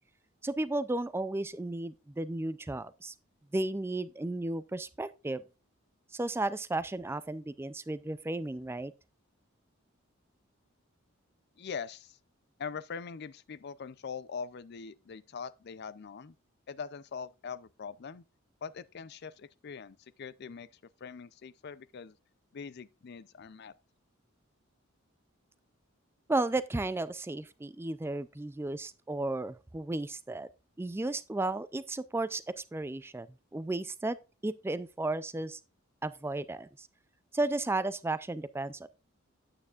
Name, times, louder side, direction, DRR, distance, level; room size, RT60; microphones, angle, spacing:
voice 1, 0.4-3.1 3.5-5.4 6.1-8.9 26.3-30.5 30.8-33.3 33.5-34.2 34.4-35.6 36.0-36.9 37.3-38.9, right 2 dB, 10° right, 0.3 m, -34 dB
voice 2, 11.6-12.2 12.6-16.3 16.7-18.2 18.6-20.7 21.0-22.1 22.5-23.7, left 6 dB, 50° left, 0.4 m, -42 dB
9.6 x 8.8 x 2.4 m
head